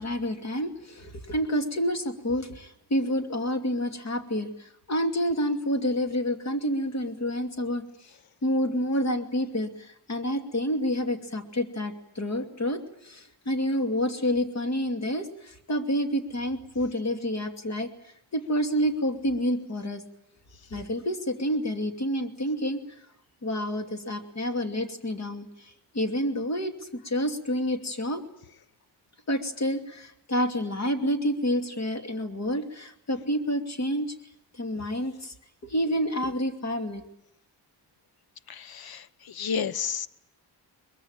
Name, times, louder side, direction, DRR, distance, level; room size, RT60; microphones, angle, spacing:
voice 1, 0.0-7.8 8.4-20.0 20.7-22.8 23.4-28.2 29.3-34.1 34.5-35.3 35.6-37.0, equal, 40° left, 5 dB, 2.7 m, -29 dB
voice 2, 38.5-40.1, left 7 dB, 60° left, 17 dB, 1.0 m, -32 dB
22.5 x 22.0 x 8.9 m, 0.78 s
wide cardioid pair, 140°, 41 cm